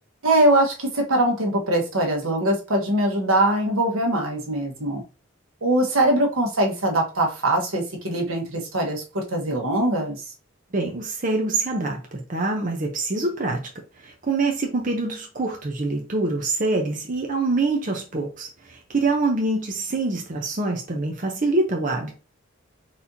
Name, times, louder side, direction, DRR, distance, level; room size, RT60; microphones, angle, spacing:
voice 1, 0.2-5.0 5.6-10.2, right 1 dB, 80° right, 1.4 m, -22 dB
voice 2, 10.7-13.6 14.0-22.1, right 3 dB, 40° right, 0.7 m, -25 dB
4.3 x 4.2 x 2.7 m
head